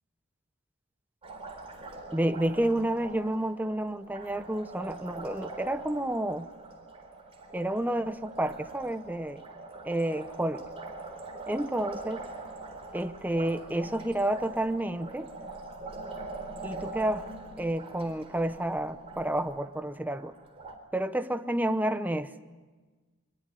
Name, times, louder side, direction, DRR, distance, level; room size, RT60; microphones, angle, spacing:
Liquid, 1.2-20.7, right 2 dB, 25° right, 3.8 m, -43 dB
voice 1, 2.1-6.5 7.5-9.4 9.8-10.6 11.5-12.2 12.9-15.3 16.6-17.3 17.6-20.3 20.9-22.5, right 1 dB, 10° right, 9 dB, 0.7 m, -30 dB
24.0 x 21.0 x 9.9 m, 1.3 s
head